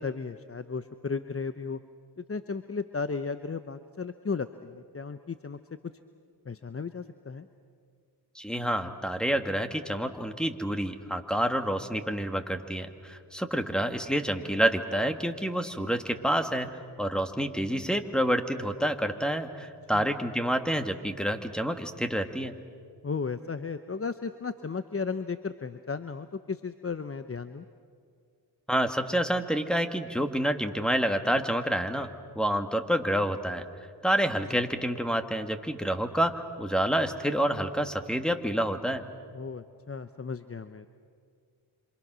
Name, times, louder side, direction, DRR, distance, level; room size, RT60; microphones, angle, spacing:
voice 1, 0.0-1.8 2.2-5.6 6.5-7.5 19.9-20.1 23.0-27.6 34.5-34.6 39.3-40.9, left 5 dB, 30° left, 11 dB, 0.9 m, -35 dB
voice 2, 8.4-16.7 17.0-22.5 28.7-32.1 32.4-33.6 34.0-39.0, equal, ahead, 7 dB, 2.0 m, -28 dB
27.0 x 27.0 x 6.3 m, 2.2 s
cardioid pair, 55°, 48 cm